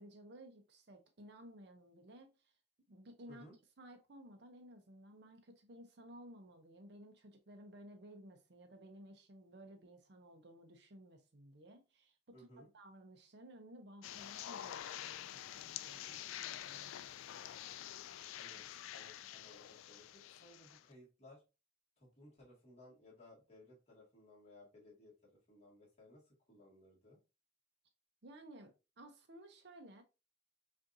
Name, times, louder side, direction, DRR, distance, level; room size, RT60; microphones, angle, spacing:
voice 1, 0.0-2.5 2.9-3.4 3.8-17.1 28.2-30.0, right 1 dB, 55° right, 0.6 m, -56 dB
voice 2, 12.3-12.7 18.3-18.6 18.9-21.4 22.0-27.2, left 1 dB, 35° left, 1.9 m, -60 dB
sound 1, 14.0-20.8, left 11 dB, 85° left, 0.3 m, -47 dB
5.1 x 2.6 x 2.6 m
head